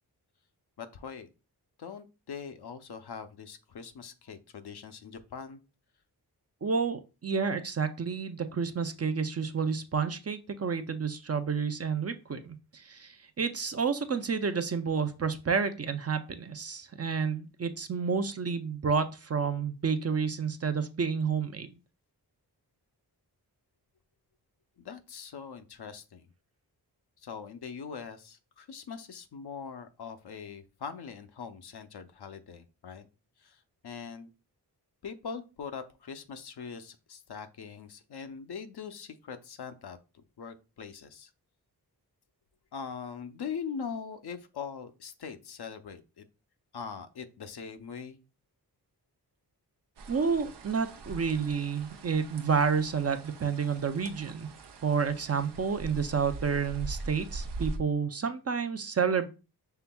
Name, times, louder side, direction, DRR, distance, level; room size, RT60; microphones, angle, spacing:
voice 1, 0.8-1.3 1.8-5.6 24.8-26.3 27.2-33.1 33.4-34.3 35.0-40.0 40.4-41.3 42.7-46.3 46.7-48.2, left 6 dB, 70° left, 9 dB, 0.7 m, -42 dB
voice 2, 6.6-21.7 50.1-54.5 54.8-59.3, right 6 dB, 40° right, 9 dB, 0.5 m, -30 dB
sound 1, 50.0-57.8, right 3 dB, 75° right, 0.7 m, -42 dB
5.7 x 3.4 x 2.2 m, 0.30 s
cardioid pair, 60°, 41 cm